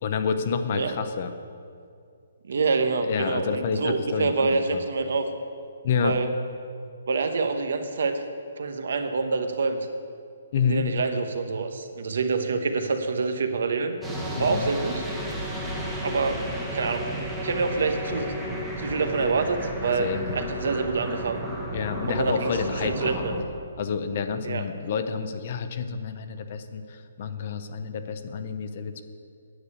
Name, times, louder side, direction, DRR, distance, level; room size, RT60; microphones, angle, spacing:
voice 1, 0.0-1.3 3.0-4.8 5.8-6.2 10.5-10.9 14.4-14.7 20.0-20.2 21.7-23.2 23.8-29.0, left 6 dB, 35° left, 9 dB, 0.6 m, -29 dB
voice 2, 2.5-5.2 6.0-6.3 7.1-8.2 8.6-9.8 10.6-14.0 14.3-15.0 16.0-18.3 18.8-21.5 22.1-23.3 24.4-24.6, right 4 dB, 60° right, 7 dB, 1.0 m, -26 dB
sound 1, 14.0-23.4, equal, 5° right, 1.1 m, -33 dB
9.6 x 6.6 x 8.6 m, 2.3 s
hypercardioid pair, 175°, 0 cm